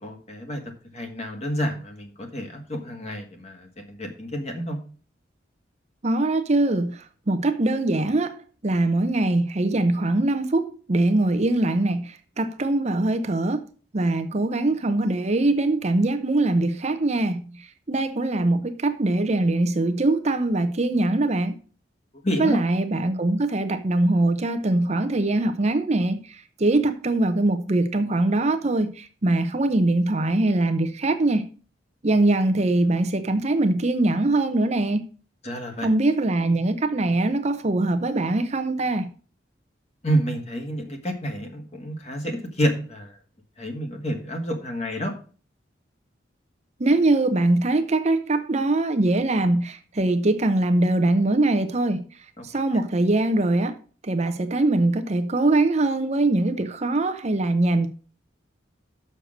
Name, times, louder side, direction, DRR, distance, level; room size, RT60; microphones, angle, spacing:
voice 1, 0.0-0.6 0.9-4.8 22.2-22.6 35.4-35.9 40.0-43.1 43.6-45.1 52.4-52.5, equal, 35° left, 1.8 m, -29 dB
voice 2, 6.0-13.7 13.9-21.6 22.4-31.5 32.0-35.1 35.8-39.1 46.8-52.0 52.4-53.8 54.0-57.9, right 2 dB, 35° right, 0.7 m, -22 dB
6.6 x 6.4 x 6.4 m
head